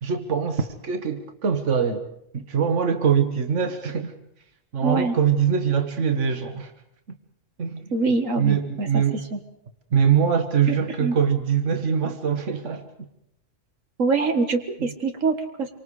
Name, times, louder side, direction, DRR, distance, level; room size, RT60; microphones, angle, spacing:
voice 1, 0.0-2.1 2.3-4.1 4.7-6.7 7.6-7.9 8.4-9.2 9.9-12.9 14.8-14.9, right 7 dB, 70° right, 7 dB, 1.8 m, -23 dB
voice 2, 4.8-5.1 7.9-9.0 9.3-9.4 11.0-11.1 14.0-15.7, right 3 dB, 90° right, 6 dB, 2.1 m, -24 dB
27.0 x 25.0 x 5.0 m, 0.77 s
omnidirectional pair, 1.3 m